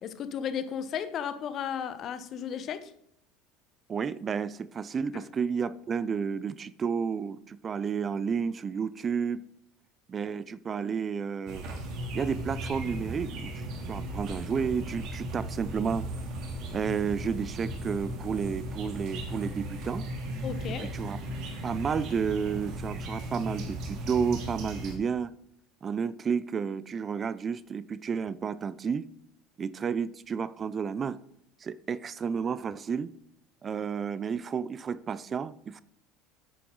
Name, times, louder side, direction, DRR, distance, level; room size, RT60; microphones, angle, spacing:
voice 1, 0.0-2.9 20.4-20.9, left 8 dB, 45° left, 1.0 m, -34 dB
voice 2, 3.9-9.5 10.1-11.7 12.1-16.1 16.7-20.0 20.8-21.2 21.6-25.3 25.8-29.1 29.6-31.2 31.6-33.1 33.6-35.8, right 6 dB, 35° right, 0.5 m, -31 dB
sound 1, 11.5-25.0, right 1 dB, 55° right, 2.6 m, -36 dB
9.8 x 8.3 x 3.9 m
hypercardioid pair, 80°, 0 cm